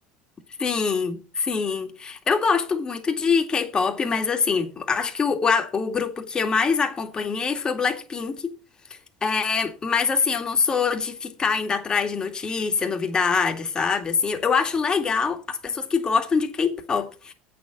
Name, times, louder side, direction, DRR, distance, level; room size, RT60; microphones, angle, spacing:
voice 1, 0.6-8.5 9.2-17.3, left 5 dB, 25° left, 2.3 m, -24 dB
8.6 x 7.0 x 6.3 m
supercardioid pair, 110°, 3 cm